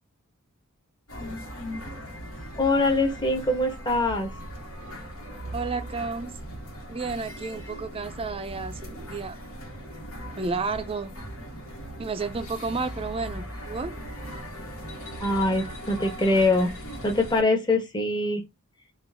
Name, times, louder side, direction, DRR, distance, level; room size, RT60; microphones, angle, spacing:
sound 1, 1.1-17.4, equal, 80° left, 1.5 m, -39 dB
voice 1, 2.6-4.3 15.2-16.7 17.0-18.4, left 2 dB, 20° left, 1.1 m, -23 dB
voice 2, 5.5-6.3 6.9-9.4 10.4-11.1 12.0-14.0, right 4 dB, 25° right, 0.5 m, -31 dB
4.0 x 2.5 x 3.5 m
head